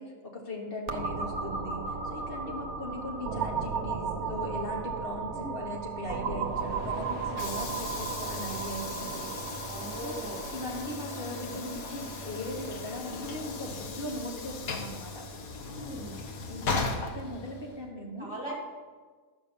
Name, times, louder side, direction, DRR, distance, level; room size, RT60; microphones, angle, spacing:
voice 1, 0.0-9.3 10.0-10.2 10.5-15.2 16.5-16.8 17.1-18.3, left 1 dB, 40° left, -1 dB, 2.0 m, -39 dB
sound 1, 0.9-14.4, right 5 dB, 85° right, 1.2 m, -36 dB
Train / Sliding door, 6.4-17.9, left 3 dB, 75° left, 1.4 m, -37 dB
voice 2, 9.7-10.5 15.7-16.2 18.2-18.5, right 1 dB, 20° right, -2 dB, 2.4 m, -40 dB
12.5 x 5.4 x 6.7 m, 1.5 s
omnidirectional pair, 1.5 m